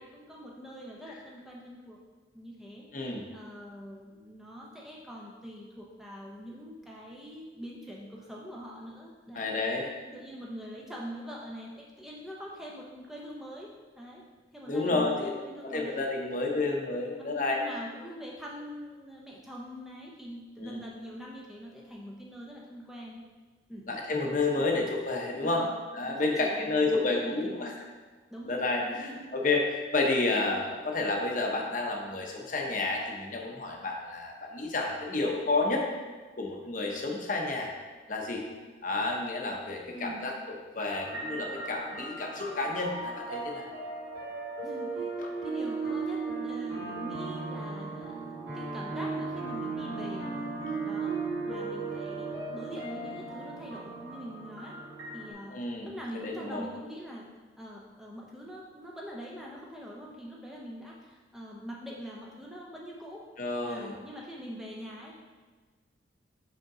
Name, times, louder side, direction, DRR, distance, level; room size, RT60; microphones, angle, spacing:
voice 1, 0.0-2.0 2.3-9.5 9.8-14.3 14.5-16.0 17.2-23.2 23.7-23.9 24.5-24.9 25.4-25.8 26.0-27.8 28.3-29.3 39.9-40.3 44.6-45.1 45.4-50.3 50.8-51.1 51.5-54.8 55.1-55.6 55.8-57.3 57.6-63.3 63.6-65.1, equal, ahead, -3 dB, 0.5 m, -43 dB
voice 2, 9.3-9.9 14.7-15.3 15.6-17.6 20.6-20.8 23.9-25.6 25.9-27.7 28.5-35.8 36.4-37.7 38.1-38.4 38.8-40.3 40.8-43.6 45.2-45.3 55.5-55.9 56.1-56.6 63.4-63.9, left 3 dB, 45° left, 1 dB, 0.8 m, -30 dB
sound 1, 41.0-55.3, right 3 dB, 65° right, 2.0 m, -36 dB
5.3 x 5.1 x 3.7 m, 1.3 s
head